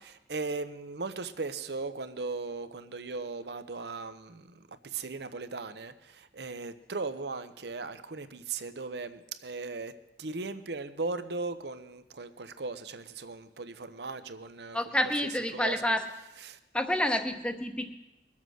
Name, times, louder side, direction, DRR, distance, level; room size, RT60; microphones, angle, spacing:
voice 1, 0.0-9.9 10.2-14.8 15.5-15.8 16.4-16.6, right 3 dB, 65° right, 11 dB, 0.8 m, -38 dB
voice 2, 14.7-16.1 16.7-17.9, left 1 dB, 5° left, 7 dB, 0.9 m, -28 dB
21.5 x 7.3 x 6.3 m, 0.99 s
head